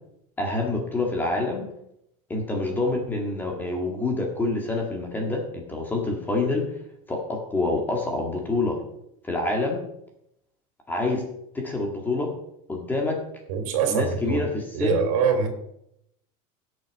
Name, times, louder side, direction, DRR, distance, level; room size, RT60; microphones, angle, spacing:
voice 1, 0.4-1.7 2.3-6.7 7.1-8.8 9.2-9.8 10.9-11.2 11.5-12.3 12.7-13.2 13.9-15.1, left 2 dB, 10° left, 1 dB, 1.9 m, -26 dB
voice 2, 13.5-14.5 14.7-15.5, right 7 dB, 70° right, 5 dB, 2.8 m, -24 dB
16.5 x 6.6 x 4.7 m, 0.78 s
cardioid pair, 170°, 18 cm